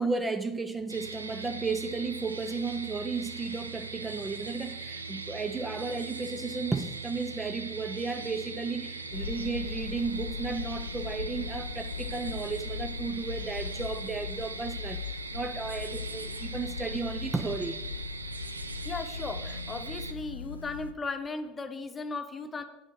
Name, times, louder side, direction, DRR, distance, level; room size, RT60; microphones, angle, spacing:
voice 1, 0.0-17.8, right 4 dB, 15° right, 0.5 m, -34 dB
sound 1, 0.9-20.1, right 4 dB, 90° right, 0.5 m, -40 dB
sound 2, 9.1-20.9, left 6 dB, 85° left, 0.4 m, -39 dB
voice 2, 18.8-22.6, left 3 dB, 20° left, 1.0 m, -36 dB
8.7 x 6.2 x 4.6 m
figure-of-eight pair, 75°, 0 cm